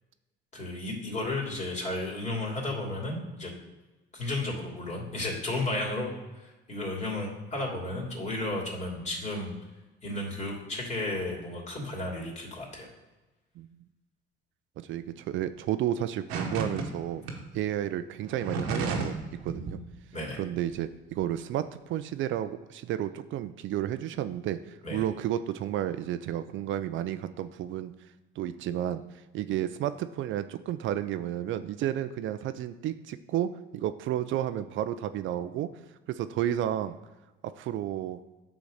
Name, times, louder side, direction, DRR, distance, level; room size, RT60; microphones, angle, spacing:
voice 1, 0.5-3.5 4.1-6.1 6.3-9.5 10.0-12.9 20.1-20.4 24.8-25.0, left 2 dB, 35° left, -2 dB, 2.8 m, -33 dB
voice 2, 14.8-17.2 17.5-19.1 19.4-19.8 20.4-27.9 28.4-35.7 36.1-37.0 37.4-38.2, right 11 dB, 65° right, 11 dB, 0.5 m, -32 dB
sound 1, 16.3-16.8 17.3-17.4 18.2-19.2 19.5-19.8, right 4 dB, 90° right, 1.2 m, -31 dB
6.9 x 4.0 x 6.5 m, 1.1 s
supercardioid pair, 80°, 21 cm